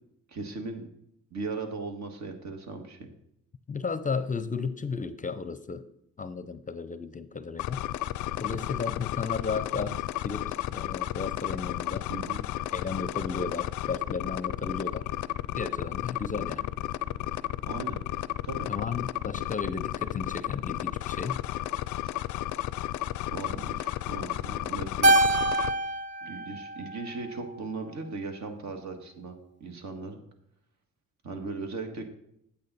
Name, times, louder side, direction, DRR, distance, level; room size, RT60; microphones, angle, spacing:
voice 1, 0.3-0.8 1.3-3.1 12.1-12.4 17.7-18.0 18.4-18.7 23.3-25.4 26.2-30.2 31.2-32.0, right 3 dB, 65° right, 4 dB, 1.7 m, -38 dB
voice 2, 3.7-5.9 6.2-7.8 8.4-10.0 10.2-12.1 12.7-15.1 15.5-16.7 18.7-21.4, left 5 dB, 25° left, 12 dB, 0.5 m, -34 dB
sound 1, 7.6-25.7, left 14 dB, 75° left, 0.5 m, -33 dB
Keyboard (musical), 25.0-27.5, right 1 dB, 40° right, 0.8 m, -25 dB
8.6 x 8.5 x 4.1 m, 0.75 s
cardioid pair, 90°, 30 cm